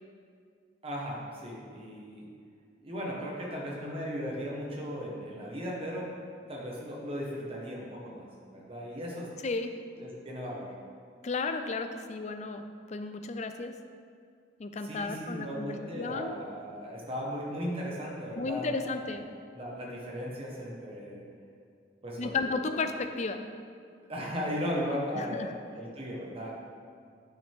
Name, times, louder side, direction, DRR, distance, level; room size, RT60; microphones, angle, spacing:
voice 1, 0.8-2.3 2.8-6.1 6.5-8.3 8.5-9.3 10.0-10.7 14.8-19.1 19.5-21.2 22.0-22.5 22.8-22.9 24.1-26.5, equal, 30° right, -4 dB, 1.4 m, -37 dB
voice 2, 11.2-13.7 14.6-16.3 18.4-19.3 22.2-23.4 25.1-25.5, left 3 dB, 40° left, 8 dB, 0.4 m, -33 dB
9.3 x 5.5 x 3.6 m, 2.2 s
head